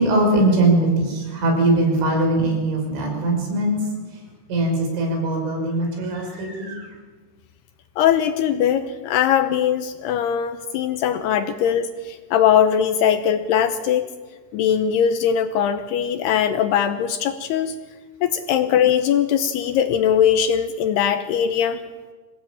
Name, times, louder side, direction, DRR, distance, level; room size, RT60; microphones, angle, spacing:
voice 1, 0.0-3.8 4.5-6.9, right 2 dB, 80° right, 2 dB, 8.1 m, -21 dB
voice 2, 8.0-14.1 14.5-17.8 18.2-21.8, left 9 dB, 75° left, 9 dB, 2.6 m, -20 dB
26.5 x 18.5 x 8.7 m, 1.4 s
omnidirectional pair, 5.4 m